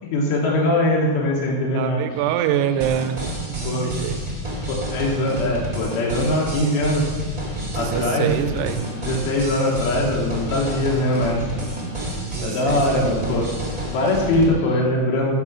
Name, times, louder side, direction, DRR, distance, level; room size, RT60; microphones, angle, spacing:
voice 1, 0.0-2.1 3.6-3.9 4.9-7.0 7.8-11.4 12.4-13.5 13.9-15.3, left 1 dB, 75° left, -3 dB, 2.9 m, -21 dB
voice 2, 1.7-4.2 7.6-8.9 11.8-13.0, right 10 dB, 85° right, 9 dB, 2.6 m, -26 dB
sound 1, 2.1-14.8, right 1 dB, 55° left, 3.1 m, -39 dB
sound 2, 2.8-14.5, equal, 20° right, 1.0 m, -30 dB
7.4 x 6.1 x 6.0 m, 1.4 s
omnidirectional pair, 4.8 m